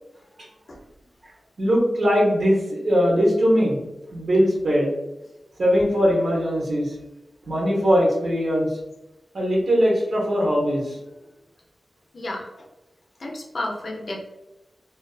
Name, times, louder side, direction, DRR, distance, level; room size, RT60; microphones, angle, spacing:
voice 1, 1.6-3.8 4.1-4.9 5.6-6.9 7.4-8.8 9.3-11.0, equal, 70° right, -3 dB, 0.7 m, -20 dB
voice 2, 12.1-12.7 13.2-14.2, left 1 dB, 55° left, -1 dB, 0.5 m, -32 dB
2.3 x 2.2 x 2.3 m, 0.99 s
wide cardioid pair, 125°, 0 cm